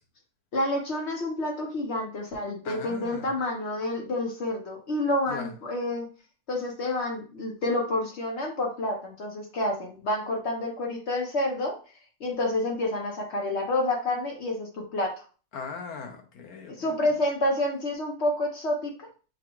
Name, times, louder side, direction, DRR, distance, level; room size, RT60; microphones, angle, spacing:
voice 1, 0.5-6.1 6.5-11.8 12.2-15.2 16.7-18.9, left 1 dB, 55° left, 1 dB, 1.1 m, -29 dB
voice 2, 2.6-3.3 5.3-5.5 15.5-17.0, left 5 dB, 85° left, 5 dB, 1.3 m, -39 dB
6.1 x 2.3 x 3.0 m, 0.38 s
omnidirectional pair, 1.5 m